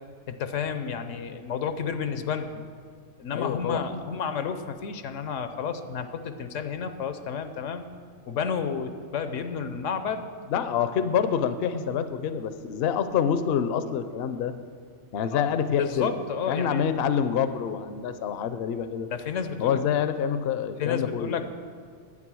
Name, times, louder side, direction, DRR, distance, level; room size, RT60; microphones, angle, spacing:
voice 1, 0.3-2.6 3.2-7.8 8.3-10.3 15.3-15.4 15.8-16.8 19.1-19.8 20.8-21.4, left 6 dB, 85° left, 9 dB, 1.1 m, -31 dB
voice 2, 3.3-4.0 10.5-14.5 15.1-16.1 16.5-19.1 19.6-21.4, left 8 dB, 65° left, 11 dB, 0.7 m, -27 dB
9.8 x 8.8 x 6.2 m, 2.2 s
omnidirectional pair, 1.3 m